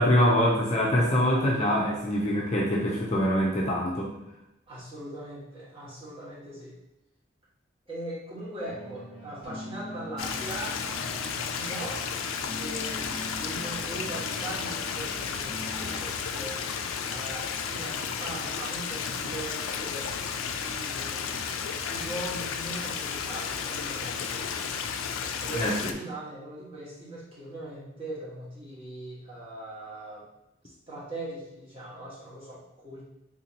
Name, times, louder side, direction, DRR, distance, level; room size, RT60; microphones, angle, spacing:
voice 1, 0.0-4.1 25.5-25.8, equal, 35° left, -3 dB, 0.5 m, -24 dB
voice 2, 4.7-6.8 7.9-12.0 12.5-16.6 17.1-20.1 20.5-21.4 21.9-24.6 25.3-30.2 30.6-33.0, right 1 dB, 30° right, -8 dB, 1.4 m, -40 dB
sound 1, 8.6-16.0, equal, 10° right, 1.2 m, -43 dB
Stream, 10.2-25.9, left 6 dB, 90° left, 0.3 m, -33 dB
3.7 x 2.8 x 2.9 m, 0.89 s
head